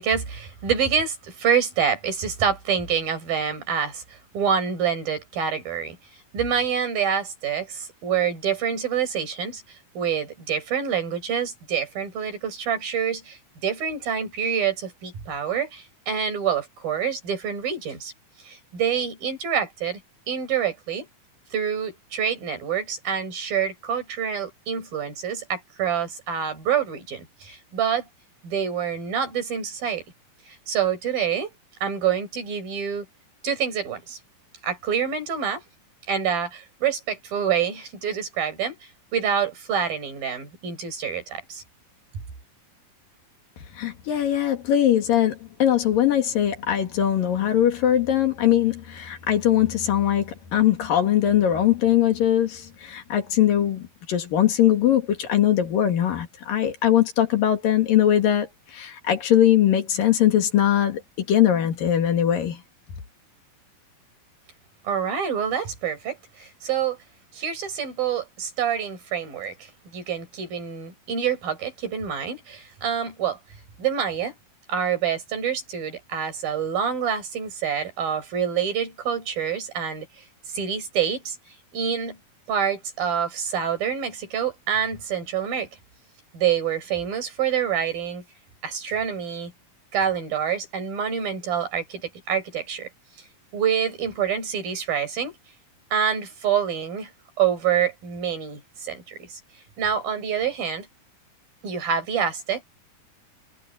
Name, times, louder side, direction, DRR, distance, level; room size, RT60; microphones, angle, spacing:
voice 1, 0.0-6.0 6.3-9.6 10.0-18.1 18.4-20.0 20.3-21.1 21.5-28.1 28.4-30.0 30.7-31.5 31.8-33.1 33.4-34.2 34.6-35.6 36.1-38.8 39.1-41.6 64.9-67.0 67.3-73.4 73.8-74.4 74.7-80.1 80.5-81.4 81.7-82.2 82.5-85.7 86.3-88.2 88.6-89.5 89.9-92.0 92.3-92.9 93.5-95.4 95.9-97.1 97.4-99.4 99.8-100.9 101.6-102.6, right 7 dB, 90° right, 6.9 m, -26 dB
voice 2, 43.8-62.6, left 11 dB, 75° left, 4.0 m, -21 dB
omnidirectional pair, 4.0 m